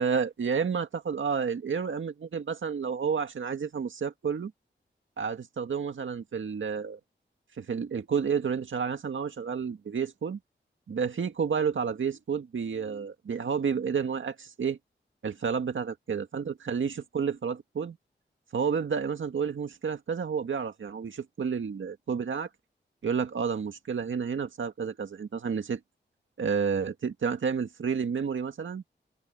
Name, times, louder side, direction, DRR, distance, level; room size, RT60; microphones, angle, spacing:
voice 1, 0.0-4.5 5.2-7.0 7.6-10.4 10.9-14.8 15.2-18.0 18.5-22.5 23.0-25.8 26.4-28.8, right 6 dB, 85° right, 1.9 m, -30 dB
open air
wide cardioid pair, 65°, 20 cm